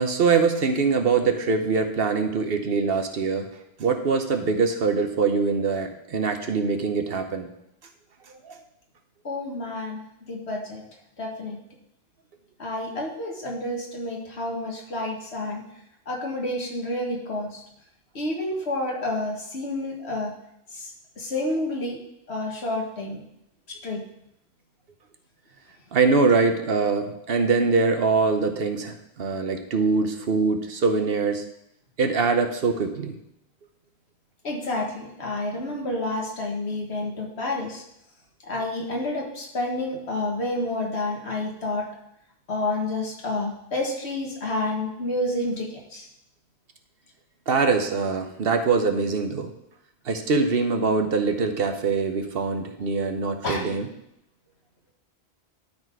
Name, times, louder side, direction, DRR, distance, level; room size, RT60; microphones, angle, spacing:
voice 1, 0.0-3.5 3.8-7.5 8.3-8.6 25.9-31.4 32.0-33.1 47.5-49.5 50.1-53.9, right 4 dB, 65° right, 7 dB, 1.0 m, -23 dB
voice 2, 9.2-10.0 10.3-10.8 11.2-11.6 12.6-15.6 16.1-17.6 18.2-20.3 20.7-20.9 21.2-22.0 22.3-23.2 23.7-24.0 34.4-37.8 38.5-41.9 42.5-46.1 53.4-53.7, left 2 dB, 80° left, 0 dB, 1.8 m, -29 dB
12.0 x 4.1 x 4.6 m, 0.80 s
omnidirectional pair, 1.1 m